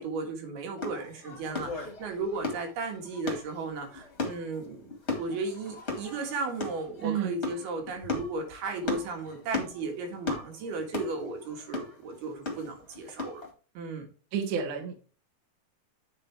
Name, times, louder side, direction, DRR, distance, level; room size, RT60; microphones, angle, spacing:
voice 1, 0.0-13.5 13.8-14.1, right 3 dB, 80° right, 3 dB, 3.7 m, -35 dB
sound 1, 0.8-13.5, left 3 dB, 30° left, 1.3 m, -37 dB
voice 2, 7.0-7.3 14.3-15.1, right 8 dB, 60° right, 2 dB, 2.5 m, -30 dB
8.4 x 6.8 x 3.4 m, 0.37 s
omnidirectional pair, 4.4 m